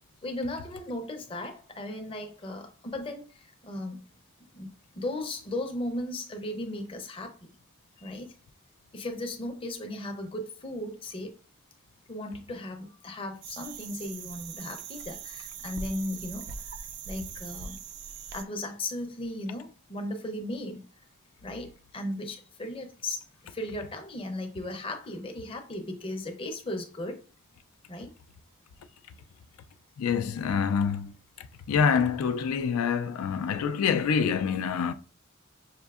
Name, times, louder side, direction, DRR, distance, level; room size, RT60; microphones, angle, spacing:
voice 1, 0.2-4.0 4.5-7.5 8.0-8.3 8.9-11.3 12.1-17.8 18.3-20.8 21.4-27.2 27.9-28.1, left 1 dB, 25° left, 0.5 m, -36 dB
sound 1, 13.4-18.4, right 6 dB, 50° right, 0.3 m, -41 dB
voice 2, 30.0-31.1 31.7-34.9, left 6 dB, 85° left, 0.3 m, -26 dB
5.7 x 2.6 x 2.4 m
head